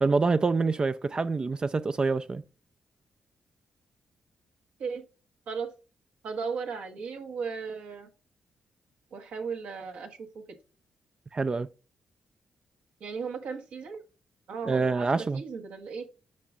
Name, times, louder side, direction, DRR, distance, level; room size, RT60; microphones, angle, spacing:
voice 1, 0.0-2.4 11.3-11.7 14.7-15.4, right 4 dB, 35° right, 0.4 m, -26 dB
voice 2, 6.2-8.1 9.1-10.4 13.0-14.0 14.5-16.1, right 5 dB, 75° right, 1.4 m, -36 dB
8.5 x 5.3 x 2.4 m
supercardioid pair, 50°, 3 cm